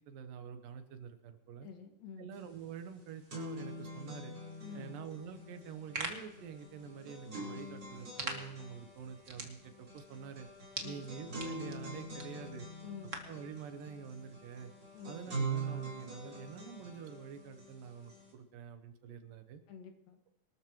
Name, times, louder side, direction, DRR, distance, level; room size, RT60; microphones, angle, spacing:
voice 1, 0.1-1.7 2.2-4.3 4.7-10.5 10.8-12.7 13.2-14.7 15.1-19.6, right 7 dB, 80° right, 8 dB, 2.7 m, -47 dB
voice 2, 1.6-2.3 4.6-4.9 10.8-11.1 12.8-13.2 14.9-15.2 19.7-20.2, left 6 dB, 80° left, 3 dB, 3.5 m, -48 dB
sound 1, 2.4-2.5 2.8-18.3, right 2 dB, 30° right, 4.9 m, -44 dB
sound 2, 5.6-13.4, right 3 dB, 45° right, 0.9 m, -46 dB
24.0 x 13.0 x 3.1 m, 0.87 s
omnidirectional pair, 3.9 m